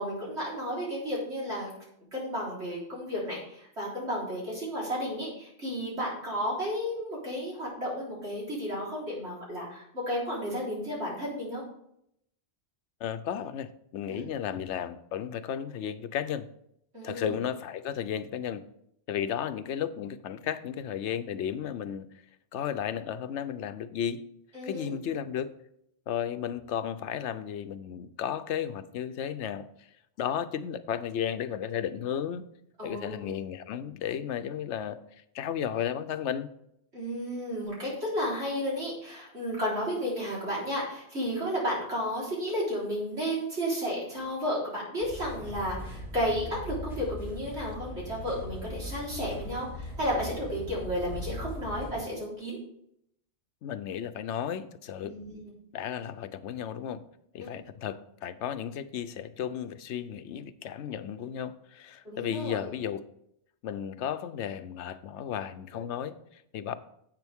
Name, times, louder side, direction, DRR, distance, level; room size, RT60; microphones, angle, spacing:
voice 1, 0.0-1.7 2.1-11.6 14.1-14.3 16.9-17.3 24.5-24.9 32.8-33.3 36.9-52.6 55.0-55.5 57.4-57.6 62.0-62.7, equal, 70° right, 4.3 m, -33 dB
voice 2, 13.0-16.5 17.0-18.6 19.1-22.1 22.5-24.3 24.6-25.5 26.1-29.9 30.2-32.5 32.8-35.0 35.3-36.5 53.6-55.2 55.7-57.0 57.3-63.1 63.6-66.8, left 9 dB, 85° left, 0.9 m, -34 dB
sound 1, 45.0-52.0, left 1 dB, ahead, 3.5 m, -40 dB
10.5 x 8.1 x 3.5 m
omnidirectional pair, 1.2 m